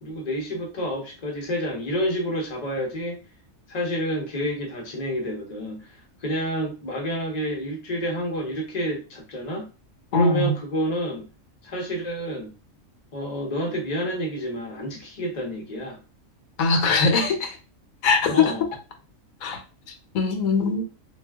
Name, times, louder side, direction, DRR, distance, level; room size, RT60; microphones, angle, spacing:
voice 1, 0.0-3.2 3.7-9.7 10.1-11.3 11.6-12.5 13.1-16.0 18.3-18.7, equal, 35° left, 0.8 m, -29 dB
voice 2, 10.1-10.5 16.6-17.5 18.0-18.5 19.4-19.6 20.1-20.8, left 4 dB, 85° left, 1.1 m, -21 dB
2.5 x 2.3 x 3.4 m
omnidirectional pair, 1.4 m